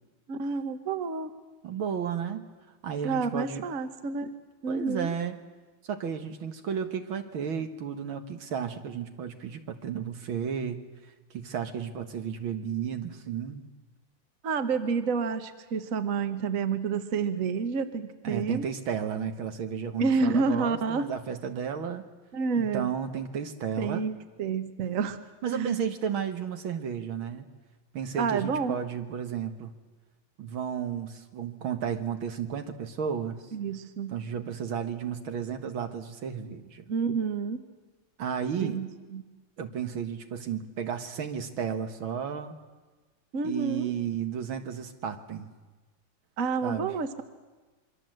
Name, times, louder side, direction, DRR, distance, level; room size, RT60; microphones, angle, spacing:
voice 1, 0.3-1.3 3.0-4.3 4.6-5.1 14.4-18.7 20.0-21.1 22.3-22.9 23.8-24.1 24.4-25.2 25.5-25.8 28.2-28.8 33.5-34.2 36.9-37.6 38.6-39.2 43.3-43.9 46.4-47.2, right 5 dB, 45° right, 9 dB, 1.5 m, -29 dB
voice 2, 1.6-2.4 2.8-3.7 4.7-5.4 5.9-10.8 11.3-13.7 18.2-22.1 22.6-24.1 25.4-27.5 27.9-29.7 30.4-33.4 34.1-36.9 38.2-38.8 39.6-42.6 43.4-45.5 46.6-46.9, right 7 dB, 70° right, 7 dB, 2.3 m, -33 dB
26.5 x 24.0 x 7.8 m, 1.3 s
omnidirectional pair, 2.3 m